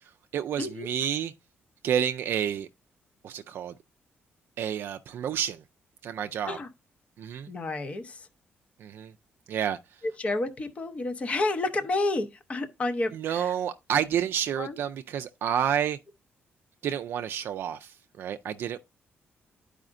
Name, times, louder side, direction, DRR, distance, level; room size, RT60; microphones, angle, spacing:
voice 1, 0.3-1.3 1.8-2.7 3.2-3.7 4.6-5.6 6.0-6.6 7.2-7.5 8.8-9.1 9.5-9.8 13.1-16.0 16.8-18.8, right 9 dB, 60° right, 0.3 m, -29 dB
voice 2, 7.5-8.3 10.0-13.5 14.6-14.8, left 2 dB, 30° left, 0.7 m, -30 dB
12.0 x 4.9 x 2.5 m
cardioid pair, 160°, 4 cm